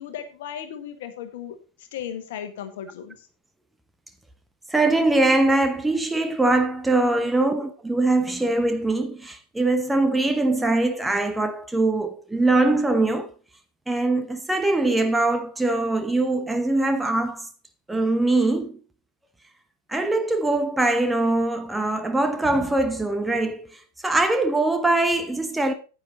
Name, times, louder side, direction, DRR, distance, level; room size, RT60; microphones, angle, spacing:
voice 1, 0.0-3.3 7.2-7.3, left 9 dB, 55° left, 1.6 m, -36 dB
voice 2, 4.7-13.3 13.9-17.5 17.9-18.8 19.9-23.8 24.0-25.7, right 2 dB, 5° right, 0.9 m, -22 dB
9.6 x 9.0 x 3.9 m
figure-of-eight pair, 90°, 0 cm